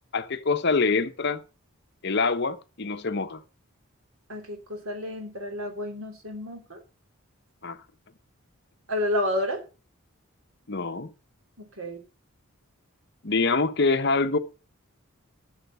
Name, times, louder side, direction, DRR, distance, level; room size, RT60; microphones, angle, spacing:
voice 1, 0.1-1.4 2.0-3.4 7.6-7.8 10.7-11.1 13.2-14.4, left 4 dB, 55° left, 1.0 m, -25 dB
voice 2, 4.3-6.8 8.9-9.6 11.8-12.0, left 1 dB, 75° right, 3.1 m, -30 dB
13.0 x 7.1 x 5.5 m
head